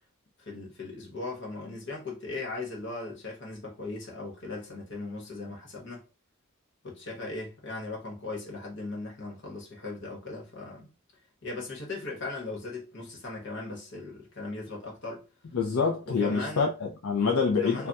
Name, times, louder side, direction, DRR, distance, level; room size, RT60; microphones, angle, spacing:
voice 1, 0.4-6.0 6.8-10.9 11.4-15.2 16.1-16.7 17.4-17.9, left 3 dB, 55° left, 1.1 m, -38 dB
voice 2, 15.5-17.9, left 5 dB, 70° left, 0.5 m, -26 dB
2.3 x 2.3 x 3.9 m
head